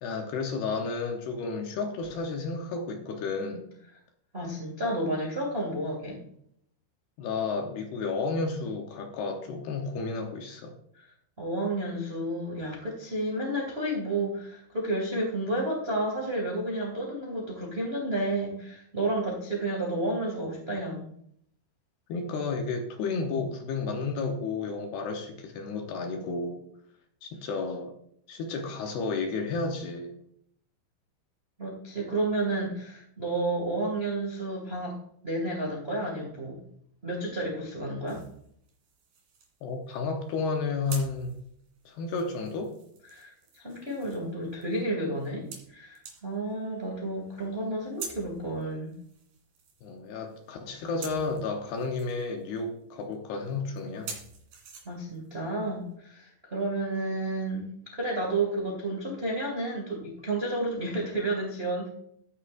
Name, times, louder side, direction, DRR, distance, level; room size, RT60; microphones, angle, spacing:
voice 1, 0.0-3.7 7.2-10.7 22.1-26.6 27.2-27.9 28.3-30.1 39.6-41.4 41.9-42.7 49.8-54.2, left 4 dB, 70° left, 3 dB, 2.6 m, -32 dB
voice 2, 4.3-6.2 11.0-11.1 11.4-21.1 31.6-35.0 35.2-36.6 37.0-38.2 43.1-48.9 54.8-61.9, right 1 dB, 85° right, -2 dB, 0.5 m, -31 dB
sound 1, 38.1-56.0, right 6 dB, 55° right, 3.7 m, -48 dB
14.0 x 9.5 x 2.6 m, 0.70 s
omnidirectional pair, 5.5 m